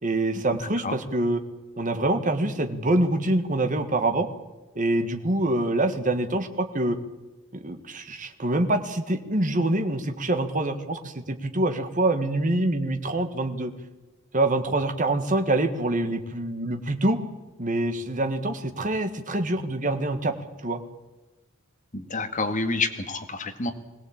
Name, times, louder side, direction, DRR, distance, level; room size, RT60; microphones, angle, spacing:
voice 1, 0.0-1.4 1.8-4.3 4.7-7.0 7.5-13.7 14.3-17.2 17.6-20.3 20.6-20.8, right 2 dB, 40° right, 8 dB, 1.7 m, -25 dB
voice 2, 21.9-23.7, left 3 dB, 40° left, 6 dB, 1.8 m, -28 dB
21.5 x 17.0 x 8.8 m, 1.2 s
head